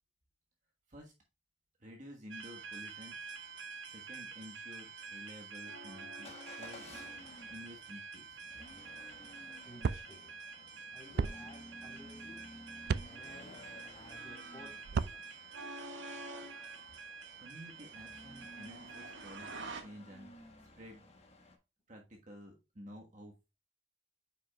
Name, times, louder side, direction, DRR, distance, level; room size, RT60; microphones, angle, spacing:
voice 1, 1.8-3.3 3.9-6.8 7.4-8.4 17.4-20.3 20.8-21.1 21.9-23.3, equal, 40° right, 1 dB, 1.3 m, -52 dB
sound 1, 2.3-19.8, right 4 dB, 75° right, 1.5 m, -47 dB
Motor vehicle (road) / Engine starting / Accelerating revving vroom, 6.2-21.6, left 1 dB, 35° left, 1.3 m, -55 dB
voice 2, 9.7-10.4 10.9-12.6 13.0-13.6 13.9-15.2, left 1 dB, 15° left, -2 dB, 3.7 m, -55 dB
sound 2, 9.8-10.0 11.2-11.3 12.8-13.1 14.8-15.2, right 5 dB, 55° right, 0.3 m, -32 dB
8.7 x 6.0 x 2.3 m, 0.27 s
head